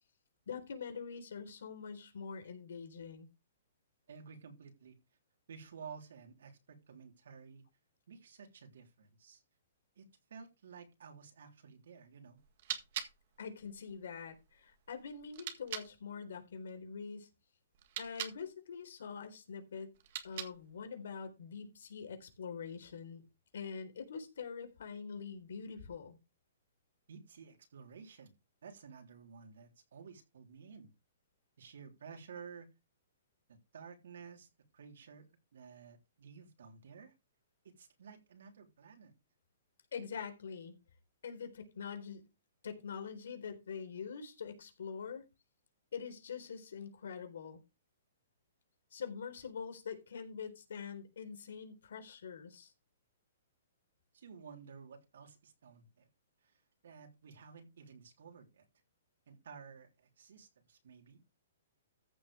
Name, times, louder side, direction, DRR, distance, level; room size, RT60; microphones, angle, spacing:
voice 1, 0.5-3.3 13.4-17.3 18.0-19.9 20.2-23.2 23.5-26.2 39.9-40.7 41.2-42.2 42.6-45.2 45.9-47.6 48.9-52.7, left 6 dB, 75° left, 4.0 m, -44 dB
voice 2, 4.1-5.0 5.5-7.6 8.1-9.4 10.0-10.1 10.3-12.4 27.1-28.3 28.6-30.9 31.6-32.7 33.5-34.5 34.7-37.1 37.6-39.1 54.1-56.1 56.4-58.7 59.3-61.2, right 6 dB, 70° right, 3.5 m, -53 dB
sound 1, 12.4-15.9 17.7-18.4 19.9-20.8, right 11 dB, 40° right, 1.7 m, -44 dB
14.5 x 7.7 x 3.5 m
hypercardioid pair, 170°, 0 cm